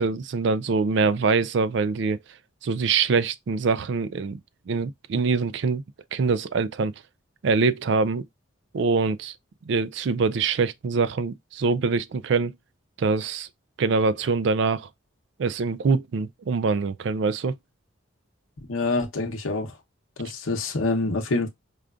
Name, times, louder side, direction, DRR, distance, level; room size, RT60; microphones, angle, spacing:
voice 1, 0.0-2.2 2.6-4.4 4.7-5.8 6.1-6.9 7.4-8.2 8.7-9.3 9.7-12.5 13.0-13.5 13.8-14.9 15.4-17.5, right 4 dB, 60° right, 0.3 m, -24 dB
voice 2, 18.7-19.7 20.2-21.5, left 3 dB, 85° left, 0.9 m, -26 dB
5.0 x 2.3 x 2.3 m
head